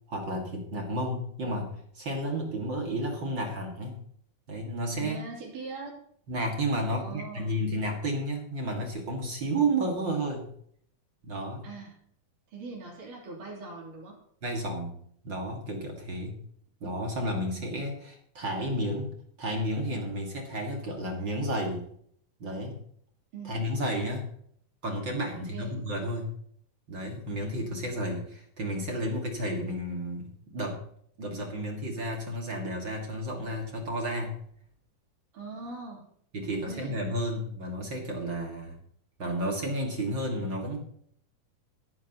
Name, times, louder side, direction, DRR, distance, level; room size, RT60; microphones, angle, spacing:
voice 1, 0.1-4.0 4.5-5.2 6.3-10.5 11.2-11.7 14.4-15.0 15.2-16.4 16.8-21.9 22.4-22.8 23.4-24.3 24.8-26.3 26.9-30.8 31.2-34.4 36.3-38.8 39.2-40.8, right 1 dB, 40° right, 1 dB, 2.2 m, -32 dB
voice 2, 5.0-6.0 6.8-7.6 11.6-12.0 12.5-14.2 23.3-23.7 25.5-25.8 35.3-36.0 36.5-36.9, right 3 dB, 60° right, -2 dB, 4.7 m, -41 dB
15.0 x 13.5 x 3.0 m, 0.65 s
omnidirectional pair, 4.1 m